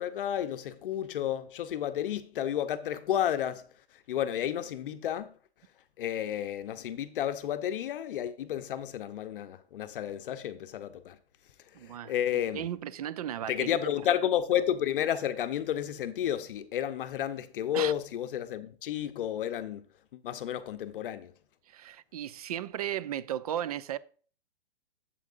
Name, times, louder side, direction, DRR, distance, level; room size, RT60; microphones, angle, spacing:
voice 1, 0.0-3.7 3.9-5.4 6.0-11.2 11.8-12.6 13.5-19.9 20.1-21.3, left 10 dB, 55° left, 0.7 m, -31 dB
voice 2, 11.7-13.9 17.7-17.9 21.7-24.0, right 11 dB, 35° right, 0.4 m, -35 dB
8.1 x 7.6 x 2.5 m
hypercardioid pair, 155°, 33 cm